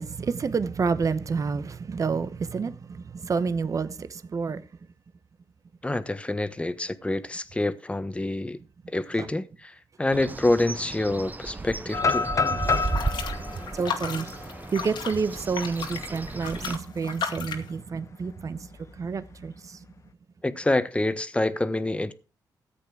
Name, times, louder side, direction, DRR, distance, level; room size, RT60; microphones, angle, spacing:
voice 1, 0.0-4.7 8.8-9.3 12.5-12.8 13.1-14.4 14.7-19.9, right 5 dB, 45° right, 0.9 m, -30 dB
voice 2, 5.8-8.6 8.9-9.4 10.0-12.3 20.4-22.1, left 2 dB, 15° left, 1.2 m, -26 dB
Bird, 10.1-16.8, right 3 dB, 20° right, 0.8 m, -35 dB
sound 1, 11.9-15.8 16.3-16.4 16.8-17.2 18.5-19.3, left 4 dB, 40° left, 0.8 m, -29 dB
sound 2, 12.7-17.7, left 6 dB, 80° left, 2.2 m, -35 dB
14.0 x 8.2 x 4.8 m
cardioid pair, 75°, 8 cm